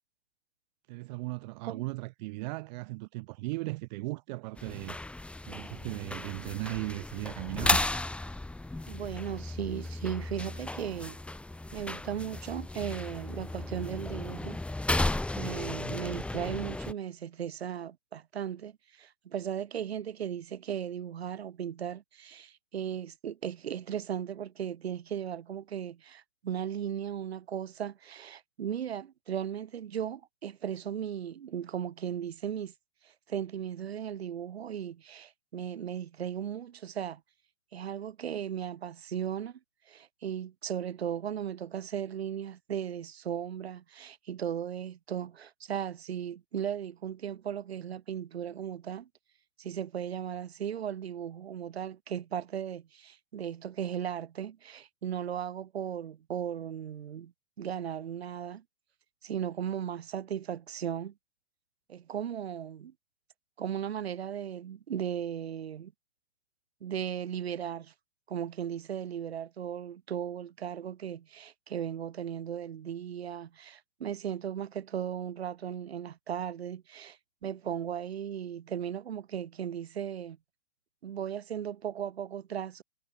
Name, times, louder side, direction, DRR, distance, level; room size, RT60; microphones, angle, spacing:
voice 1, 0.9-5.0 5.5-7.8, right 23 dB, 40° right, 1.8 m, -37 dB
sound 1, 4.6-16.9, left 2 dB, 5° left, 1.8 m, -34 dB
voice 2, 8.9-11.2 11.7-14.6 15.4-32.7 33.0-37.2 37.7-39.6 39.9-49.1 49.6-57.3 57.6-58.6 59.2-61.1 61.9-62.9 63.6-65.9 66.8-67.9 68.3-80.4 81.0-82.8, right 9 dB, 65° right, 7.5 m, -36 dB
hypercardioid pair, 120°, 33 cm